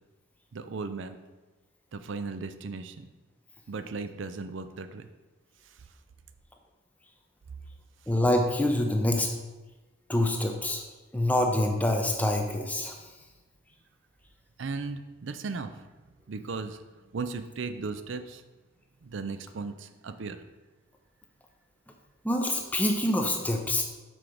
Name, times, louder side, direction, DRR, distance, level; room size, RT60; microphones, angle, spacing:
voice 1, 0.5-1.2 1.9-3.1 3.7-5.0 14.6-15.7 16.3-16.8 17.1-18.4 19.0-20.4, right 4 dB, 70° right, 10 dB, 0.5 m, -36 dB
voice 2, 8.1-9.3 10.1-10.8 11.1-12.9 22.2-23.8, left 1 dB, 10° left, 2 dB, 0.6 m, -26 dB
6.2 x 4.5 x 5.0 m, 1.2 s
head